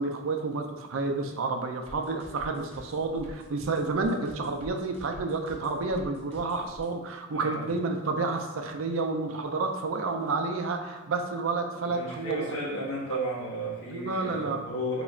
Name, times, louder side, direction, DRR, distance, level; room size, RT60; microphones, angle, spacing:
voice 1, 0.0-12.5 12.9-13.0 13.9-14.6, right 3 dB, 70° right, 4 dB, 0.5 m, -30 dB
sound 1, 1.9-6.9, equal, 30° right, 0.7 m, -47 dB
voice 2, 7.3-7.6 11.7-15.0, right 1 dB, 90° left, -6 dB, 1.4 m, -34 dB
2.9 x 2.4 x 4.2 m, 1.2 s
head